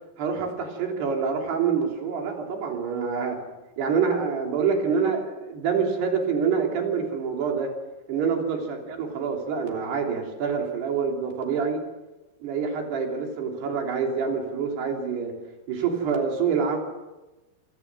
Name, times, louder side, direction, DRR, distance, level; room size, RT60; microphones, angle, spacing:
voice 1, 0.2-3.4 3.8-7.7 8.1-11.8 12.4-15.3 15.7-16.8, right 6 dB, 80° right, 2 dB, 5.2 m, -26 dB
27.5 x 18.0 x 6.2 m, 1.1 s
omnidirectional pair, 4.7 m